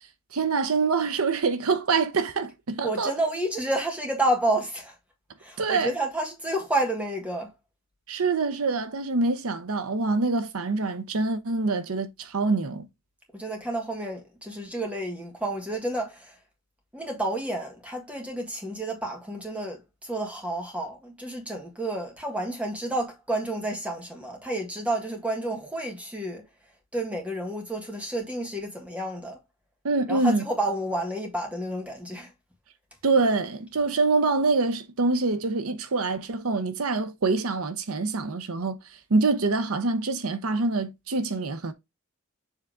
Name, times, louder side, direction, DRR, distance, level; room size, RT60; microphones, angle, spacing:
voice 1, 0.3-3.1 5.6-5.9 8.1-12.9 29.8-30.4 33.0-38.8 39.1-41.7, right 3 dB, 80° right, 0.8 m, -25 dB
voice 2, 2.8-5.0 5.4-7.5 13.3-16.4 16.9-26.4 26.9-29.4 30.1-32.3, right 1 dB, 5° right, 1.7 m, -30 dB
7.3 x 3.5 x 3.7 m
head